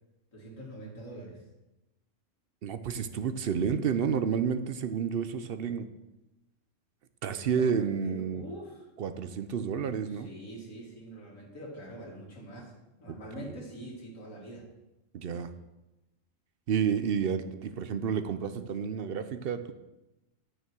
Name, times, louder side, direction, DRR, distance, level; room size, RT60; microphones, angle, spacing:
voice 1, 0.3-1.4 7.2-8.9 10.1-12.7 13.0-14.6 15.2-15.5, right 1 dB, 90° left, -3 dB, 2.6 m, -44 dB
voice 2, 2.6-5.9 7.2-8.5 9.0-10.3 13.1-13.6 15.1-15.5 16.7-19.7, right 7 dB, 55° right, 11 dB, 0.7 m, -30 dB
9.1 x 6.5 x 6.2 m, 0.99 s
omnidirectional pair, 1.3 m